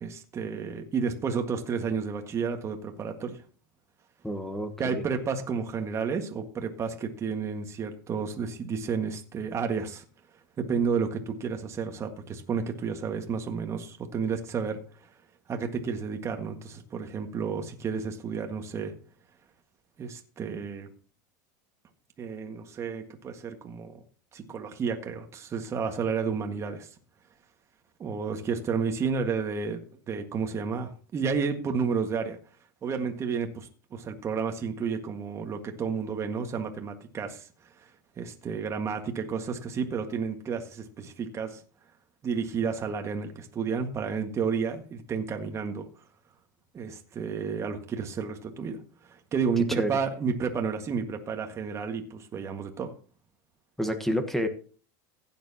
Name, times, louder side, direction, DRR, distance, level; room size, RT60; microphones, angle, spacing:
voice 1, 0.0-3.4 4.8-10.0 10.6-14.8 15.5-18.9 20.0-20.9 22.2-24.0 24.3-26.9 28.0-32.4 32.8-37.5 37.8-37.9 38.2-41.6 42.2-45.9 46.7-48.8 49.0-52.9, right 5 dB, 25° right, 5 dB, 1.8 m, -31 dB
voice 2, 4.2-5.0 49.7-49.9 53.8-54.5, equal, 5° left, 8 dB, 1.3 m, -29 dB
15.5 x 9.4 x 2.9 m, 0.40 s
supercardioid pair, 130°, 10 cm